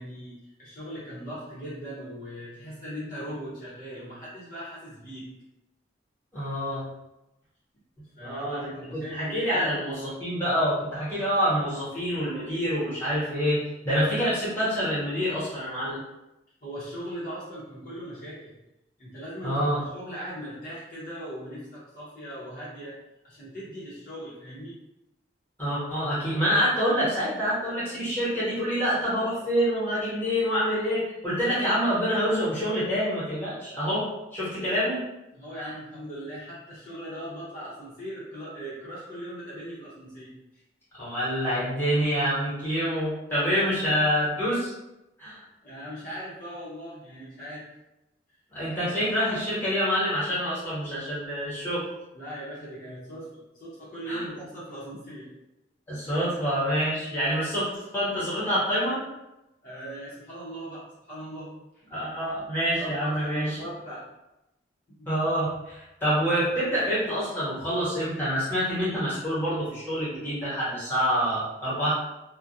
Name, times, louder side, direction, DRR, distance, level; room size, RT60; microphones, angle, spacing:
voice 1, 0.0-5.3 8.2-9.7 16.6-18.5 19.0-23.0 23.2-24.8 35.3-40.6 43.4-44.0 45.6-47.7 52.1-55.3 59.6-61.8 62.8-64.1 64.9-65.1, equal, 45° left, -9 dB, 0.7 m, -39 dB
voice 2, 6.3-6.8 8.2-16.0 19.4-19.8 25.6-35.0 35.6-35.7 40.9-44.7 45.2-45.4 48.5-51.9 54.1-54.2 55.9-59.0 61.9-63.6 65.0-71.9, equal, 10° left, -10 dB, 1.0 m, -27 dB
2.3 x 2.1 x 2.7 m, 0.93 s
head